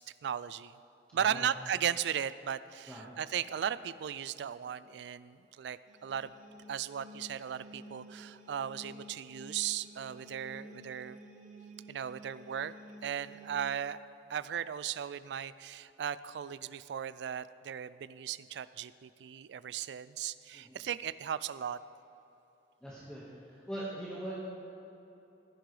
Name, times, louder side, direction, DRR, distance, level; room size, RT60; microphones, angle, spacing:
voice 1, 0.2-0.8 1.1-6.3 6.7-11.2 11.9-12.7 13.0-14.0 14.3-21.8, right 9 dB, 70° right, 16 dB, 0.3 m, -36 dB
voice 2, 1.1-1.5 2.9-3.1 20.5-20.8 22.8-23.2 23.5-24.4, right 1 dB, 5° left, -8 dB, 1.5 m, -41 dB
sound 1, 5.9-13.7, equal, 45° right, 1.0 m, -52 dB
15.5 x 10.5 x 3.3 m, 3.0 s
head